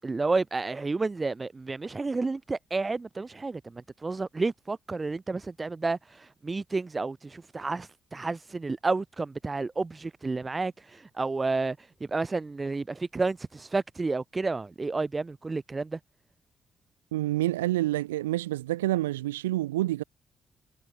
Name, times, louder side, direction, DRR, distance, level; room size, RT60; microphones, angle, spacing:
voice 1, 0.0-16.0, right 3 dB, 30° right, 6.4 m, -31 dB
voice 2, 17.1-20.0, right 16 dB, 90° right, 0.3 m, -28 dB
hypercardioid pair, 40°, 0 cm